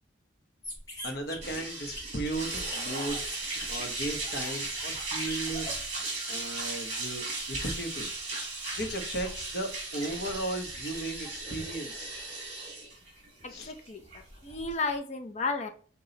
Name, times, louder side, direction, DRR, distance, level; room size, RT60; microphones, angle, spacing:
sound 1, 0.6-12.0 12.3-14.7, left 1 dB, 20° left, 1.2 m, -46 dB
voice 1, 1.0-3.2 3.7-5.7 6.3-8.1 8.8-12.1 13.5-13.7, right 1 dB, 60° left, 4 dB, 0.9 m, -36 dB
sound 2, 1.4-14.9, right 3 dB, 40° right, 2.1 m, -36 dB
voice 2, 13.4-15.7, left 3 dB, 40° left, 5 dB, 0.6 m, -33 dB
5.7 x 2.3 x 3.9 m, 0.43 s
head